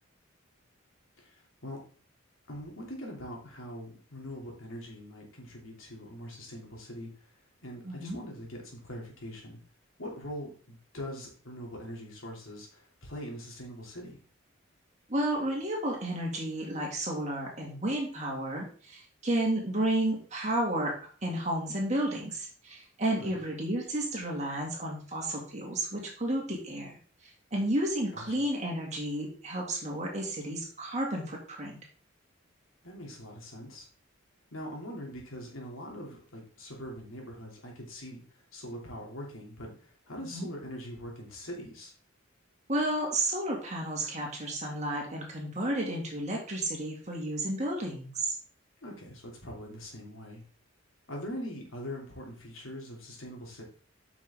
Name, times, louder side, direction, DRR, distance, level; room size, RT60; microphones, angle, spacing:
voice 1, 1.2-1.8 2.5-7.1 7.6-9.6 10.0-14.2 23.1-23.4 28.1-28.2 32.8-33.9 34.5-41.9 48.8-50.4 51.1-53.6, equal, 75° left, -1 dB, 2.8 m, -42 dB
voice 2, 7.8-8.2 15.1-20.9 21.2-27.0 27.5-31.8 40.3-40.5 42.7-48.3, right 1 dB, 35° right, -1 dB, 2.2 m, -32 dB
8.4 x 5.8 x 3.6 m, 0.42 s
head